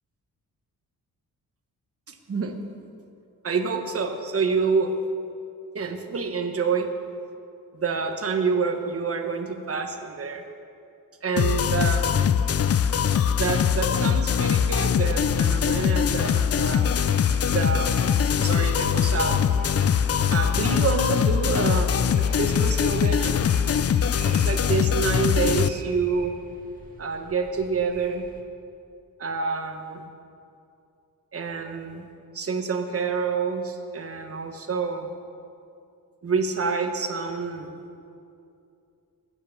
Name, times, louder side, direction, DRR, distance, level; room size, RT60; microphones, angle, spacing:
voice 1, 2.1-2.6 3.4-4.9 5.7-6.9 7.7-10.4 11.2-12.3 13.3-16.9 17.5-19.4 20.3-23.4 24.3-26.3 27.0-28.2 29.2-30.1 31.3-32.1 32.3-35.1 36.2-37.8, right 5 dB, 40° right, 5 dB, 1.2 m, -27 dB
sound 1, 11.4-25.7, left 8 dB, 40° left, 0.5 m, -22 dB
sound 2, 13.3-28.4, right 2 dB, 20° right, 1.9 m, -46 dB
16.0 x 9.8 x 7.2 m, 2.6 s
wide cardioid pair, 155°, 36 cm